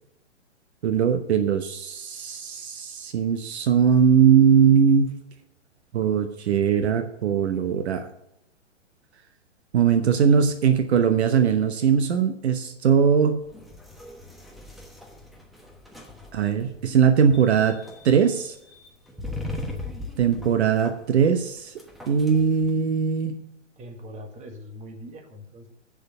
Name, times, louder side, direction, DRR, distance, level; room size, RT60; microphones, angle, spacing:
voice 1, 0.8-5.1 5.9-8.0 9.7-13.4 16.3-17.8 18.0-18.5 20.2-21.7 22.1-23.4, right 7 dB, 60° right, 8 dB, 1.1 m, -20 dB
sound 1, 13.4-22.7, left 2 dB, ahead, 1.1 m, -40 dB
voice 2, 23.8-25.7, equal, 20° right, 4 dB, 1.6 m, -42 dB
7.9 x 6.8 x 8.0 m, 0.81 s
hypercardioid pair, 120°, 36 cm